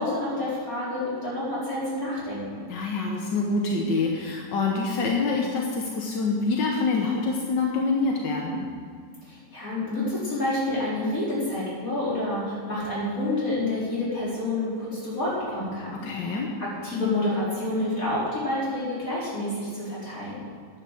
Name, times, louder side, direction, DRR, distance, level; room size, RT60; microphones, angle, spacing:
voice 1, 0.0-2.6 9.3-16.3 16.8-20.3, left 1 dB, 50° left, -8 dB, 4.9 m, -28 dB
voice 2, 2.7-8.7 15.9-16.5, left 3 dB, 90° left, 0 dB, 1.8 m, -26 dB
10.5 x 9.0 x 7.7 m, 2.1 s
omnidirectional pair, 1.8 m